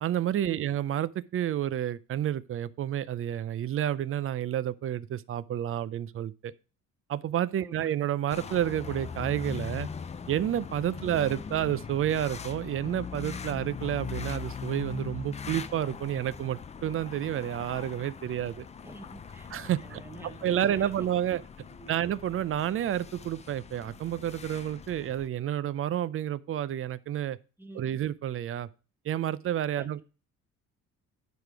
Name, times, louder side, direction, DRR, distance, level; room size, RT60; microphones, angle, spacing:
voice 1, 0.0-6.5 7.1-9.9 10.3-18.7 19.5-20.0 20.4-21.4 21.9-27.4 27.7-28.7 29.0-30.0, right 11 dB, 45° right, 0.5 m, -30 dB
voice 2, 7.6-7.9 18.8-20.9 21.7-21.9 27.6-28.0 29.8-29.9, right 1 dB, 5° right, 1.1 m, -48 dB
sound 1, 8.3-25.3, left 6 dB, 20° left, 0.4 m, -41 dB
9.4 x 5.1 x 4.6 m
cardioid pair, 135°, 31 cm